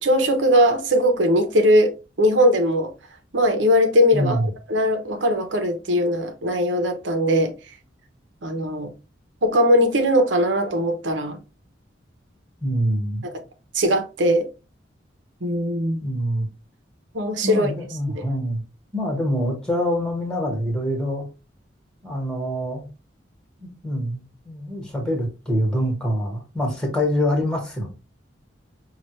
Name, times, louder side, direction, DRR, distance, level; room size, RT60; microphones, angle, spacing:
voice 1, 0.0-2.9 3.3-4.4 4.7-7.5 8.4-8.9 9.4-11.4 13.2-13.3 13.7-14.5 15.4-16.0 17.1-17.7 18.1-18.2, equal, 75° right, 0.9 m, -20 dB
voice 2, 4.1-4.5 12.6-13.2 16.0-16.5 17.4-18.6 18.9-21.2 22.0-22.9 23.6-27.9, equal, 5° left, 1.5 m, -25 dB
5.8 x 2.4 x 3.1 m
head